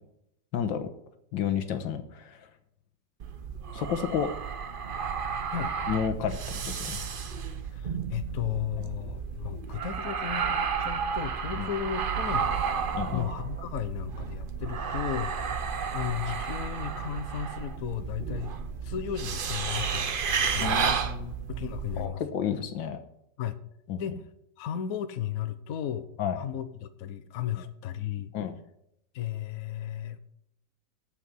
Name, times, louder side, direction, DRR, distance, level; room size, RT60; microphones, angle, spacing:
voice 1, 0.5-0.9 1.3-2.4 3.7-4.3 5.9-7.0 8.8-8.9 11.6-11.7 12.9-13.3 20.6-21.3 22.0-23.0 23.9-24.0 26.2-26.4 27.6-27.7 28.3-28.6, left 8 dB, 90° left, 8 dB, 1.8 m, -31 dB
sound 1, 3.2-22.1, right 6 dB, 60° right, 0.5 m, -32 dB
voice 2, 7.7-12.5 13.1-15.4 15.9-18.5 18.8-20.9 21.5-22.2 23.4-23.6 24.0-24.2 24.6-26.1 26.3-28.3 29.1-30.2, left 10 dB, 60° left, 10 dB, 1.1 m, -34 dB
8.3 x 7.2 x 7.7 m, 0.78 s
omnidirectional pair, 2.0 m